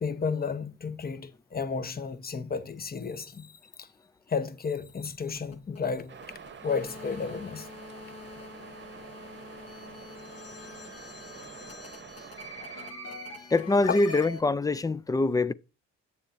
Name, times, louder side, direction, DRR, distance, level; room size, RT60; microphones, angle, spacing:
voice 1, 0.0-3.9 4.3-6.1 6.6-7.7 12.6-12.9 13.9-14.0, left 5 dB, 30° left, 0.9 m, -32 dB
sound 1, 4.8-14.4, left 2 dB, 55° left, 1.6 m, -44 dB
sound 2, 6.1-12.9, right 6 dB, 40° right, 0.9 m, -47 dB
voice 2, 13.5-15.5, left 2 dB, 15° left, 0.3 m, -24 dB
8.2 x 6.9 x 2.6 m
cardioid pair, 90°, 30 cm